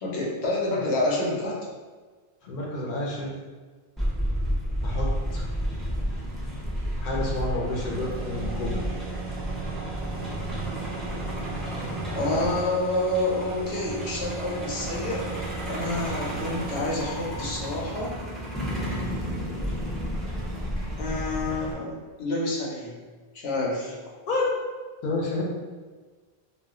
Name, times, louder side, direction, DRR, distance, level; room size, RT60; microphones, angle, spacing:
voice 1, 0.0-1.6 12.1-18.2 21.0-22.9 23.3-23.9, left 2 dB, 85° left, -4 dB, 0.9 m, -28 dB
voice 2, 2.4-3.3 4.8-5.5 7.0-9.0 24.3-24.5 25.0-25.4, left 2 dB, 60° left, -3 dB, 0.7 m, -30 dB
Truck, 4.0-21.7, equal, ahead, 0.3 m, -32 dB
sound 1, 7.6-16.7, right 6 dB, 55° right, 0.6 m, -38 dB
2.3 x 2.1 x 3.5 m, 1.4 s
omnidirectional pair, 1.0 m